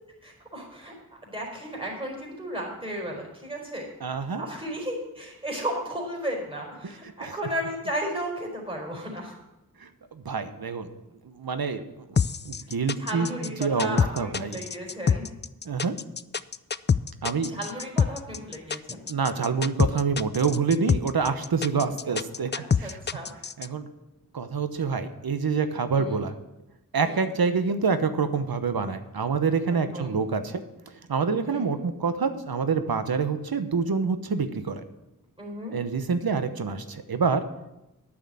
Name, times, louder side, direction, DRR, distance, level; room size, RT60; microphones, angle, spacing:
voice 1, 0.2-3.9 4.4-9.3 13.0-15.3 17.5-19.0 22.0-22.1 22.5-23.3 25.9-26.2 27.0-27.3 29.7-30.2 31.5-31.7 35.4-35.7, equal, 15° right, -2 dB, 4.2 m, -34 dB
voice 2, 4.0-4.4 7.2-7.3 9.8-10.9 11.2-12.1 12.4-14.6 15.6-15.9 17.2-17.5 19.1-22.5 22.8-23.0 23.6-23.9 24.3-26.3 26.9-30.6 31.1-34.8 35.7-37.4, right 5 dB, 80° right, 10 dB, 1.0 m, -27 dB
sound 1, 12.2-23.7, left 6 dB, 30° left, 0.4 m, -25 dB
9.6 x 6.4 x 8.6 m, 0.93 s
cardioid pair, 45°, 36 cm